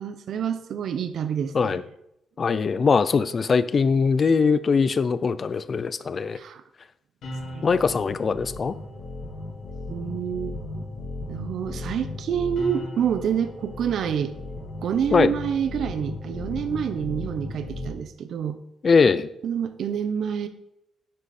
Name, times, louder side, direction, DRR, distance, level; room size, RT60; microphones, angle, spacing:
voice 1, 0.0-1.8 6.3-6.6 7.5-7.7 9.9-10.6 11.3-14.3 14.8-18.6 19.4-20.5, right 8 dB, 60° right, 10 dB, 0.8 m, -27 dB
voice 2, 2.4-6.4 7.6-8.7 15.1-15.3 18.8-19.3, left 5 dB, 30° left, 15 dB, 0.5 m, -21 dB
sound 1, 7.2-17.9, left 2 dB, 65° left, 3.2 m, -36 dB
10.5 x 8.1 x 4.3 m, 0.79 s
cardioid pair, 165°, 0 cm